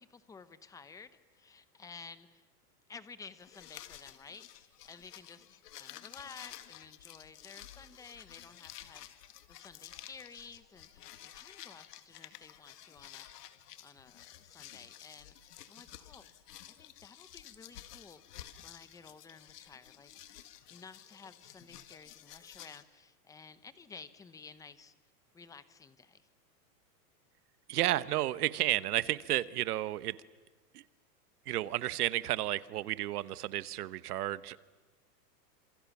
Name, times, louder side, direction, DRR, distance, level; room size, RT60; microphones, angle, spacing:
voice 1, 0.0-2.5 2.9-9.1 9.5-13.3 13.8-16.3 16.7-18.2 18.6-24.9 25.3-26.3, left 5 dB, 5° left, 13 dB, 0.8 m, -53 dB
sound 1, 3.4-22.8, left 12 dB, 75° left, 2.1 m, -52 dB
voice 2, 27.7-30.2 30.7-30.8 31.5-34.6, right 14 dB, 70° right, 16 dB, 1.3 m, -32 dB
28.5 x 27.0 x 7.2 m, 1.3 s
supercardioid pair, 155°, 48 cm